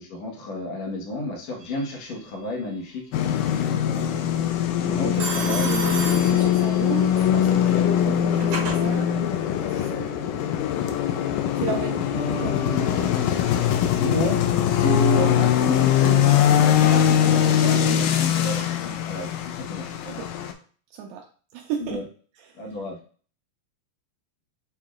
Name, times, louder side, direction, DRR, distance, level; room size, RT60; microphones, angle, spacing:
voice 1, 0.0-3.0 3.7-5.7 11.6-11.7 12.1-12.9 14.0-19.9 21.8-22.0 22.5-23.0, equal, 60° left, -2 dB, 1.9 m, -31 dB
Telephone, 1.6-2.1 5.2-7.0 8.0-8.8, right 3 dB, 60° right, 2.6 m, -32 dB
sound 1, 3.1-20.5, left 10 dB, 85° left, 1.9 m, -22 dB
voice 2, 5.0-10.2 11.6-12.0 12.3-12.5 12.8-13.1 17.6-18.0 20.1-20.3 20.9-21.2 21.5-22.0 22.4-22.6, right 7 dB, 85° right, 1 dB, 2.4 m, -34 dB
6.8 x 2.8 x 2.4 m, 0.41 s
omnidirectional pair, 4.3 m